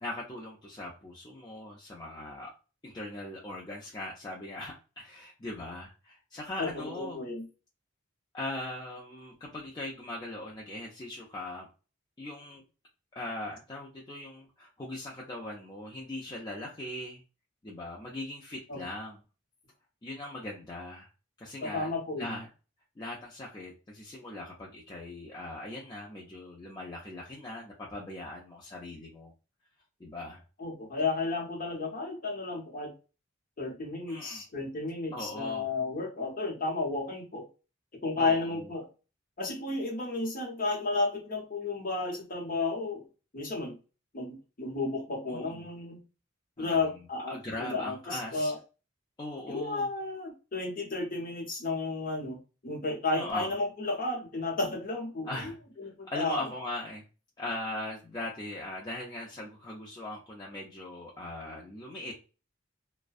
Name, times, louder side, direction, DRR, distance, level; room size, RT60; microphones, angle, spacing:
voice 1, 0.0-2.5 2.8-7.2 8.3-11.7 12.2-12.6 13.1-17.2 17.6-19.2 20.0-21.1 21.4-21.9 22.2-22.5 23.0-29.3 30.0-30.4 34.1-34.5 35.1-35.7 38.2-38.7 45.3-45.6 46.6-46.9 47.3-48.5 49.2-49.9 53.1-53.5 55.3-55.6 56.0-57.0 57.4-62.1, left 1 dB, 20° left, -4 dB, 0.4 m, -40 dB
voice 2, 6.6-7.5 18.7-18.8 21.6-22.4 30.6-32.9 33.6-37.4 38.0-38.9 39.4-43.1 43.3-43.8 44.1-46.0 46.6-48.6 49.5-52.4 52.6-55.5 55.8-56.4, left 3 dB, 45° left, -1 dB, 0.8 m, -32 dB
2.5 x 2.1 x 2.3 m, 0.33 s
head